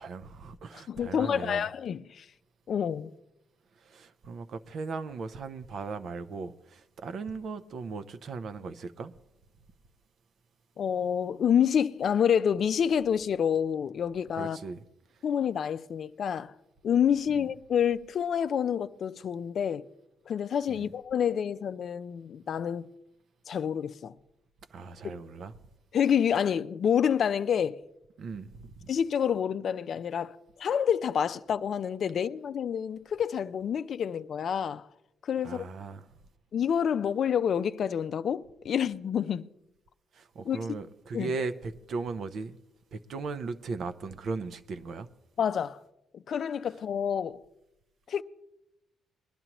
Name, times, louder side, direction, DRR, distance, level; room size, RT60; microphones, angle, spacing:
voice 1, 0.0-1.6 3.8-9.1 14.3-14.8 17.3-17.5 20.7-20.9 24.7-25.5 28.2-28.9 35.4-36.1 40.1-42.6 42.9-45.1, right 4 dB, 60° right, 0.7 m, -38 dB
voice 2, 0.9-2.3 2.7-3.1 10.8-14.6 15.2-16.5 16.8-19.8 20.3-22.9 23.5-24.1 25.9-27.8 28.9-34.8 35.2-35.6 36.5-39.5 40.4-40.6 41.1-41.3 45.4-45.8 46.1-47.4 48.1-48.2, left 8 dB, 60° left, 0.4 m, -28 dB
21.0 x 11.0 x 3.0 m
cardioid pair, 90°, 0 cm